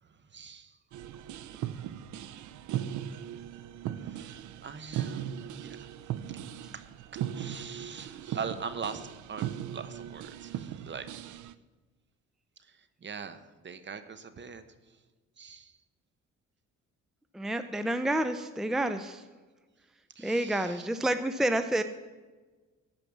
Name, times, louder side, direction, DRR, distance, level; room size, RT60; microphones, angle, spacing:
voice 1, 0.0-0.8 3.9-5.9 6.3-6.4 6.7-6.8 7.3-11.5 12.6-15.0 15.4-15.8 20.1-20.9, right 6 dB, 40° right, 11 dB, 0.9 m, -42 dB
sound 1, 0.9-11.5, right 10 dB, 75° right, 0.6 m, -38 dB
voice 2, 17.3-19.2 20.2-21.8, right 1 dB, ahead, 9 dB, 0.6 m, -29 dB
14.5 x 5.2 x 7.1 m, 1.3 s
cardioid pair, 90°, 30 cm